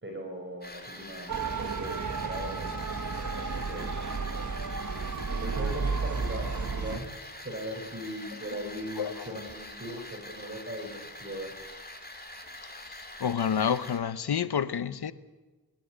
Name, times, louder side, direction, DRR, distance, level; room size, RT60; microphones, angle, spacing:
voice 1, 0.0-2.9 3.3-3.9 5.4-11.5, right 1 dB, 30° right, 4.8 m, -39 dB
sound 1, 0.6-14.0, left 1 dB, 25° left, 3.6 m, -45 dB
Motor vehicle (road) / Siren, 1.3-7.0, right 4 dB, 50° right, 1.2 m, -32 dB
voice 2, 8.6-9.4 12.8-15.1, left 7 dB, 85° left, 0.9 m, -30 dB
24.0 x 12.0 x 10.0 m
cardioid pair, 50°, 38 cm